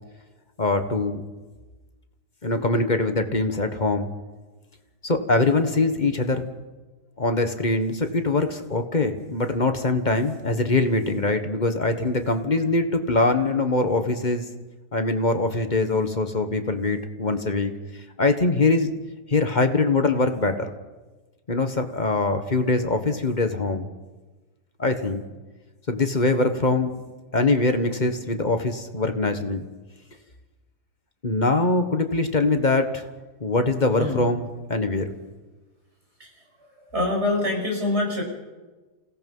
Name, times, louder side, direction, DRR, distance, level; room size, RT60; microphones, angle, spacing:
voice 1, 0.6-1.2 2.4-4.1 5.0-6.5 7.2-14.4 14.9-17.7 18.2-18.9 19.3-20.7 21.5-23.9 24.8-25.2 25.9-26.9 27.3-29.6 31.2-33.0 33.4-34.4 34.7-35.0, left 2 dB, 30° left, 7 dB, 1.4 m, -23 dB
voice 2, 36.9-38.2, left 2 dB, 40° right, 0 dB, 6.4 m, -25 dB
28.0 x 17.5 x 5.5 m, 1.2 s
omnidirectional pair, 1.8 m